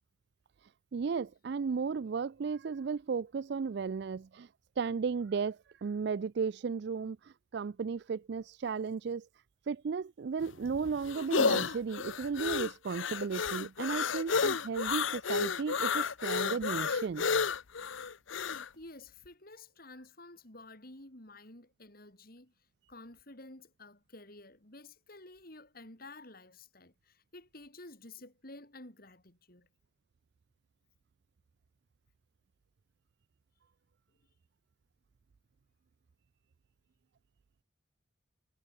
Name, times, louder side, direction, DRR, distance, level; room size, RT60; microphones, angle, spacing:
voice 1, 0.9-4.5 4.8-7.2 7.5-9.3 9.7-17.3, right 5 dB, 55° right, 0.4 m, -34 dB
sound 1, 10.4-18.7, left 5 dB, 70° left, 0.8 m, -31 dB
voice 2, 18.8-22.5 22.9-29.7, left 2 dB, 45° left, 3.8 m, -52 dB
head